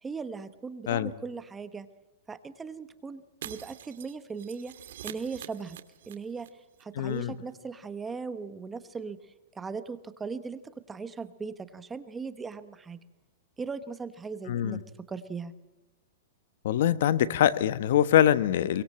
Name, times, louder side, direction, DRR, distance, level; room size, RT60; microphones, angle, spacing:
voice 1, 0.0-1.9 2.3-4.7 5.0-5.8 6.1-13.0 13.6-15.5, right 5 dB, 10° right, 12 dB, 1.0 m, -39 dB
Shatter, 3.4-6.5 6.7-6.8 7.1-7.2, right 11 dB, 65° right, 1.9 m, -45 dB
voice 2, 7.0-7.3 14.5-14.8 16.6-18.8, left 11 dB, 60° left, 15 dB, 1.2 m, -24 dB
23.5 x 22.0 x 7.6 m, 1.0 s
supercardioid pair, 165°, 0 cm